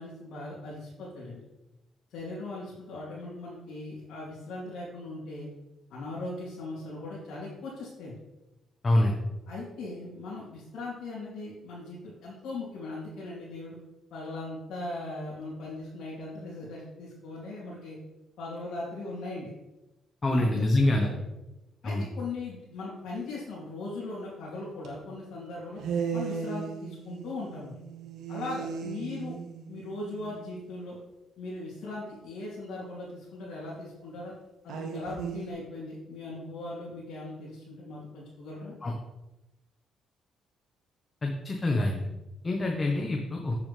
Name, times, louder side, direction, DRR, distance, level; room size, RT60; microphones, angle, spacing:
voice 1, 0.0-1.4 2.1-5.5 5.9-8.1 9.0-9.1 9.5-13.7 14.1-18.0 18.4-19.5 20.3-21.2 21.8-25.8 26.1-27.7 28.3-29.3 29.7-31.0 31.4-34.3 34.6-38.7, left 2 dB, 80° left, -7 dB, 2.9 m, -39 dB
voice 2, 8.8-9.1 20.2-21.1 21.8-22.0 38.8-38.9 41.2-42.0 42.4-43.6, left 1 dB, 30° left, 1 dB, 1.2 m, -25 dB
sound 1, 24.8-25.0 25.8-30.4 34.7-35.5, right 6 dB, 85° right, 1.3 m, -36 dB
8.9 x 7.0 x 3.4 m, 0.97 s
cardioid pair, 90°, 0 cm